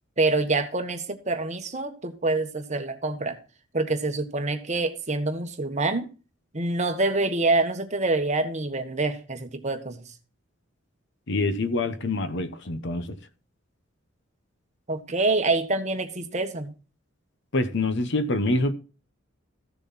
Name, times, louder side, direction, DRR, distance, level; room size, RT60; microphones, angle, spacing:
voice 1, 0.2-3.4 3.7-6.1 6.5-10.0 14.9-16.7, right 3 dB, 35° right, 1.4 m, -26 dB
voice 2, 11.3-13.2 17.5-18.7, left 2 dB, 60° left, 1.1 m, -26 dB
14.5 x 6.8 x 4.1 m
head